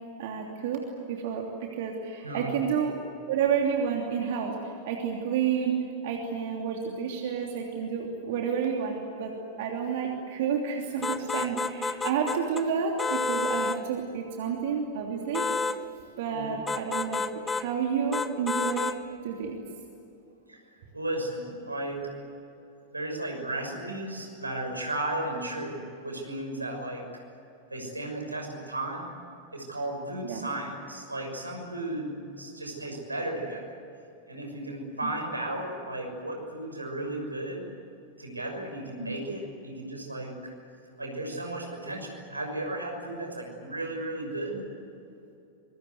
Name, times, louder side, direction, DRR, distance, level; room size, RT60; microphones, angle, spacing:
voice 1, 0.2-3.0 3.3-5.8 6.0-15.5 16.2-18.9 19.2-19.6 30.2-30.5 35.0-35.1, right 7 dB, 55° right, 1 dB, 3.0 m, -30 dB
voice 2, 2.2-2.8 16.3-16.6 20.5-20.6 20.9-22.2 22.9-27.0 27.7-29.1 29.5-33.8 34.3-37.7 38.2-40.3 41.0-44.7, right 1 dB, 85° right, 2 dB, 6.2 m, -34 dB
sound 1, 11.0-12.6 13.0-13.8 15.3-15.8 16.7-17.7 18.1-19.0, left 4 dB, 15° left, 1.1 m, -30 dB
25.5 x 23.5 x 8.2 m, 2.8 s
figure-of-eight pair, 90°, 0 cm